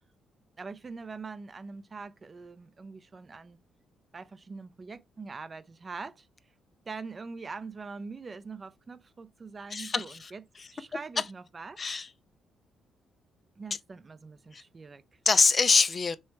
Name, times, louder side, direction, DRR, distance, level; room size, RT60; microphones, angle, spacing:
voice 1, 0.6-3.6 4.1-6.3 6.9-10.4 10.7-11.9 13.6-15.2, right 4 dB, 35° right, 0.4 m, -43 dB
voice 2, 9.7-10.3 11.8-12.1 14.5-14.6 15.3-16.2, left 4 dB, 35° left, 0.4 m, -24 dB
3.4 x 3.1 x 4.4 m
cardioid pair, 90°, 0 cm